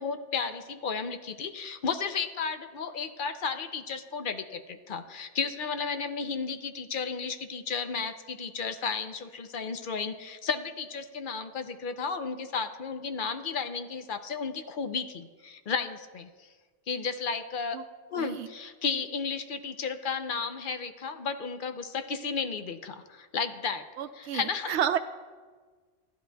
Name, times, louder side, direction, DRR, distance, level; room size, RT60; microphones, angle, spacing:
voice 1, 0.0-16.3 16.9-17.8 18.1-23.8 24.2-24.7, left 5 dB, 55° left, 9 dB, 0.7 m, -33 dB
voice 2, 18.2-18.5 24.0-25.0, right 9 dB, 75° right, 10 dB, 0.9 m, -30 dB
15.0 x 11.0 x 2.3 m, 1.4 s
omnidirectional pair, 1.2 m